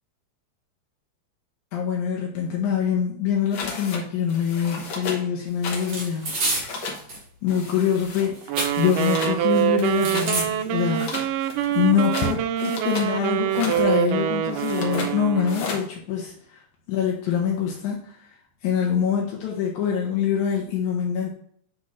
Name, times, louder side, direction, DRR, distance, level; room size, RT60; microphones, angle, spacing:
voice 1, 1.7-6.4 7.4-11.4 11.8-16.6 16.9-18.2 18.6-21.3, left 8 dB, 80° left, -1 dB, 2.4 m, -25 dB
sound 1, 3.5-4.0 4.3-5.2 5.6-6.0 6.2-7.0 7.5-8.3 8.6-9.4 9.7-10.3 10.9-13.1 13.4-13.8 14.5-15.1 15.5-15.9, left 3 dB, 55° left, 1.5 m, -34 dB
sound 2, 5.7-7.2 7.6-9.2 9.5-10.5 11.1-11.2 11.4-12.1, right 2 dB, 55° right, 3.4 m, -30 dB
Wind instrument woodwind instrument, 8.5-15.7, right 11 dB, 85° right, 1.4 m, -25 dB
10.5 x 3.5 x 3.1 m, 0.63 s
omnidirectional pair, 3.4 m